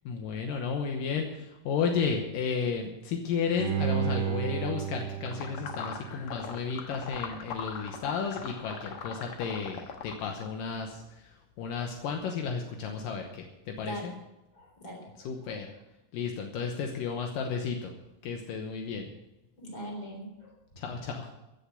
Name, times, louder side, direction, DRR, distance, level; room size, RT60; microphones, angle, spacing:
voice 1, 0.1-14.1 15.3-15.7 16.1-17.9 18.2-19.1 20.8-21.3, left 6 dB, 80° left, 3 dB, 2.7 m, -33 dB
Bowed string instrument, 3.6-6.7 7.1-7.2, right 10 dB, 75° right, 1.2 m, -33 dB
sound 1, 5.3-10.5, left 6 dB, 60° left, 1.5 m, -40 dB
voice 2, 13.8-14.1 14.5-15.6 19.6-20.5 20.9-21.0, equal, 30° left, 0 dB, 4.5 m, -42 dB
15.0 x 7.1 x 8.3 m, 0.97 s
omnidirectional pair, 4.0 m